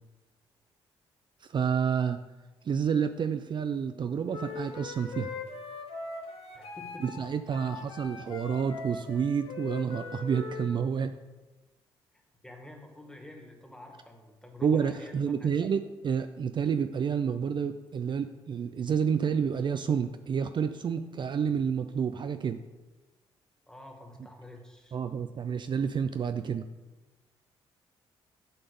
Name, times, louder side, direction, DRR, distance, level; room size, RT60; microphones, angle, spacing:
voice 1, 1.4-2.2 2.6-5.3 7.0-11.1 14.6-22.6 24.9-26.6, right 7 dB, 45° right, 9 dB, 0.5 m, -29 dB
Wind instrument woodwind instrument, 4.3-10.7, left 4 dB, 65° left, 1.7 m, -41 dB
voice 2, 6.5-7.2 12.4-15.7 23.7-25.0, left 1 dB, 5° left, 2 dB, 2.1 m, -48 dB
7.8 x 5.9 x 5.4 m, 1.2 s
supercardioid pair, 65°, 11 cm